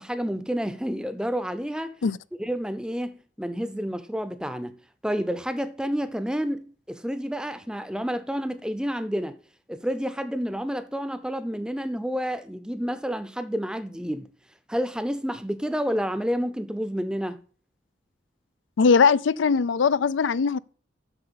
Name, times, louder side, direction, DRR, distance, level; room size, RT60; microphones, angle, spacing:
voice 1, 0.0-2.0 2.4-4.8 5.0-9.4 9.7-14.3 14.7-17.4, equal, 5° right, 0.6 m, -29 dB
voice 2, 18.8-20.6, left 5 dB, 85° left, 0.4 m, -20 dB
8.1 x 6.6 x 6.9 m
head